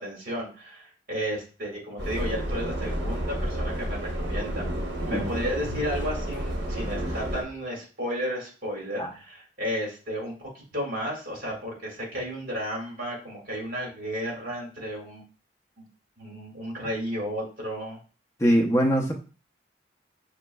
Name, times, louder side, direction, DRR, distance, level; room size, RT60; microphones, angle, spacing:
voice 1, 0.0-4.6 5.1-15.2 15.8-15.9 16.2-18.0, equal, 50° right, -2 dB, 1.8 m, -33 dB
Subway metro underground, 2.0-7.4, equal, 75° right, 0.9 m, -30 dB
voice 2, 18.4-19.1, equal, 15° left, 0 dB, 0.7 m, -22 dB
6.0 x 2.8 x 2.2 m, 0.36 s
head